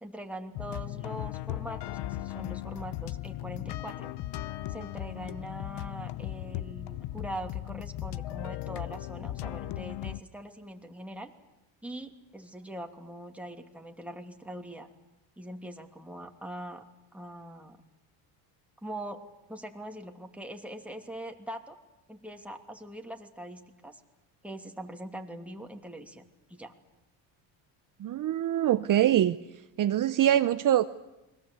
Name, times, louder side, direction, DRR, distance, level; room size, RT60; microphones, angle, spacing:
voice 1, 0.0-4.1 4.7-11.3 11.8-14.9 15.4-16.9 17.1-17.8 18.8-19.2 19.5-21.8 22.1-24.0 24.4-26.7, right 1 dB, 5° right, 3 dB, 2.8 m, -42 dB
sound 1, 0.5-10.2, left 14 dB, 60° left, 0.8 m, -37 dB
voice 2, 28.0-29.4 29.8-30.8, right 11 dB, 40° right, 11 dB, 0.8 m, -24 dB
29.5 x 22.0 x 8.2 m, 1.0 s
cardioid pair, 105°, 47 cm